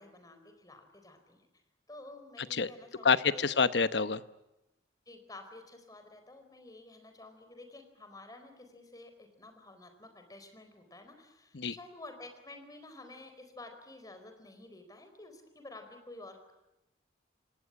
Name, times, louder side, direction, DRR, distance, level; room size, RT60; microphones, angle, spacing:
voice 1, 0.0-1.5 1.9-3.6 5.1-16.5, left 2 dB, 20° left, 6 dB, 4.3 m, -51 dB
voice 2, 3.0-4.2 11.5-11.8, left 5 dB, 70° left, 13 dB, 1.0 m, -27 dB
27.0 x 19.0 x 9.8 m, 0.93 s
head